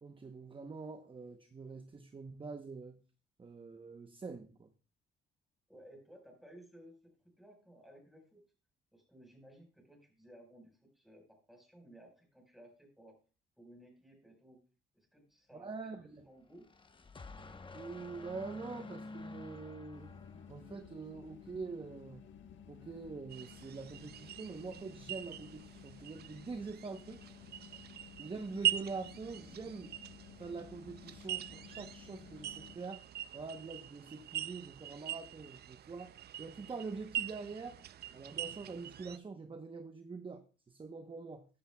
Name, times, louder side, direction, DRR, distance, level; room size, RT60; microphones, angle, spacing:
voice 1, 0.0-3.0 3.4-4.7 15.5-16.3 17.7-20.1 20.5-22.2 22.7-27.3 28.2-29.9 30.4-33.0 33.3-37.8 38.1-41.4, right 4 dB, 25° right, 0.9 m, -45 dB
voice 2, 5.7-8.4 8.9-13.2 13.6-14.6 14.9-16.7, right 1 dB, ahead, 4.5 m, -58 dB
sound 1, 16.5-21.0, left 3 dB, 25° left, 0.9 m, -50 dB
sound 2, 19.9-32.8, left 8 dB, 70° left, 1.3 m, -55 dB
sound 3, 23.3-39.2, right 11 dB, 55° right, 0.5 m, -42 dB
14.5 x 10.0 x 2.3 m
cardioid pair, 90°, 20 cm